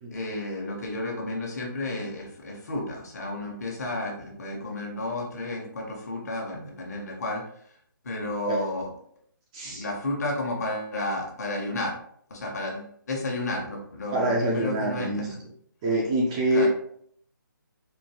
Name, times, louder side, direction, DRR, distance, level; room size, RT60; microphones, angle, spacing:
voice 1, 0.1-7.4 8.0-8.9 9.6-11.9 12.3-15.3 16.5-16.7, left 2 dB, 50° left, 0 dB, 1.2 m, -32 dB
voice 2, 9.5-9.8 14.1-15.3 15.8-16.7, right 1 dB, 15° right, -2 dB, 0.4 m, -25 dB
4.4 x 2.7 x 2.9 m, 0.64 s
hypercardioid pair, 160°, 11 cm